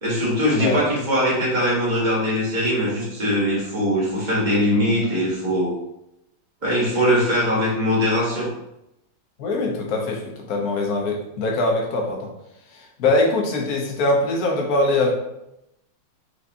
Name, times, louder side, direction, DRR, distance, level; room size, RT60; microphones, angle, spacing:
voice 1, 0.0-5.7 6.6-8.5, equal, 25° right, -6 dB, 1.4 m, -21 dB
voice 2, 9.4-12.3 13.0-15.1, left 2 dB, 55° left, 0 dB, 1.2 m, -22 dB
4.6 x 3.9 x 2.7 m, 0.85 s
omnidirectional pair, 2.2 m